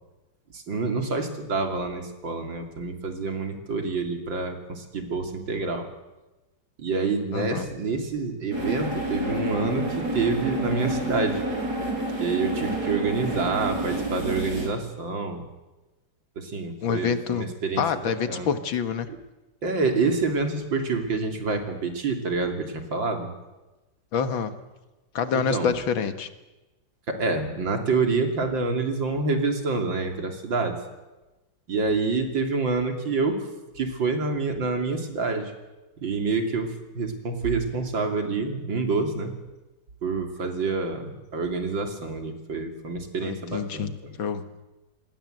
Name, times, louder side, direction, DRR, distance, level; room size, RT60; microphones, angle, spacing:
voice 1, 0.5-5.9 6.8-9.9 10.1-11.4 12.2-15.5 16.4-18.5 19.6-23.3 25.3-25.7 27.1-30.8 31.7-33.5 33.8-35.5 36.0-39.3 40.0-44.2, right 4 dB, 75° right, 4 dB, 3.6 m, -27 dB
voice 2, 7.3-7.7 16.8-17.5 17.8-19.1 24.1-24.5 25.1-26.3 43.2-43.9 44.2-44.4, left 6 dB, 85° left, 10 dB, 2.3 m, -27 dB
sound 1, 8.5-14.7, right 1 dB, 55° right, 5.1 m, -29 dB
27.5 x 20.5 x 7.9 m, 1.1 s
omnidirectional pair, 2.1 m